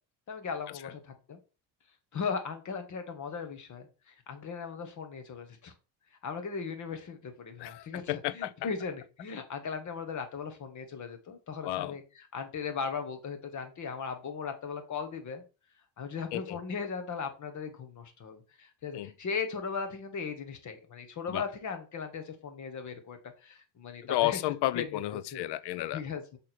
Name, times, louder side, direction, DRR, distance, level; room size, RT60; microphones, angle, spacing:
voice 1, 0.3-1.4 2.1-5.7 6.2-12.0 12.3-15.4 16.0-24.4 24.7-24.8 25.3-25.4 25.9-26.4, left 5 dB, 45° left, 1.5 m, -38 dB
voice 2, 7.6-8.5 11.6-12.0 16.3-16.6 18.9-19.1 21.3-21.4 24.1-26.0, left 15 dB, 70° left, 0.5 m, -32 dB
6.3 x 3.7 x 4.4 m
cardioid pair, 120°, 42 cm